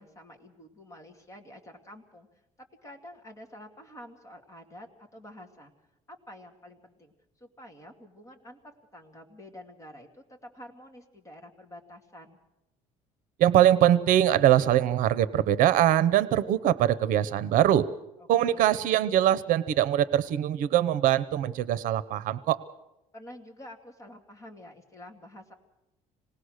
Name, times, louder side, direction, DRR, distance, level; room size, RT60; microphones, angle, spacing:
voice 1, 0.0-2.4 2.8-5.7 6.1-7.1 7.4-12.4 18.2-18.7 23.1-25.5, left 1 dB, 20° left, 3 dB, 2.4 m, -48 dB
voice 2, 13.4-17.9 18.3-22.6, right 12 dB, 70° right, 16 dB, 0.8 m, -22 dB
26.0 x 19.0 x 6.5 m, 0.94 s
cardioid pair, 150°, 14 cm